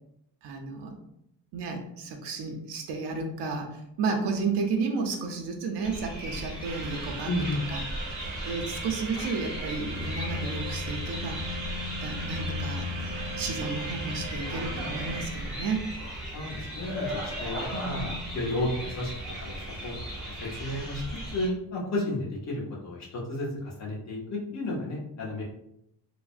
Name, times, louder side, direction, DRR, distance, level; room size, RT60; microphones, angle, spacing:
voice 1, 0.4-1.0 1.5-7.3 7.7-11.4 12.0-12.9 13.4-15.8 17.7-18.1, right 4 dB, 90° right, 3 dB, 0.6 m, -32 dB
sound 1, 5.8-21.5, equal, ahead, 0.7 m, -37 dB
sound 2, 6.6-15.3, equal, 45° right, 0.5 m, -36 dB
voice 2, 7.2-7.6 16.3-19.1 19.4-19.9 20.4-21.0 21.3-25.4, left 1 dB, 40° left, -4 dB, 0.8 m, -32 dB
3.2 x 2.0 x 2.4 m, 0.77 s
cardioid pair, 170°, 40 cm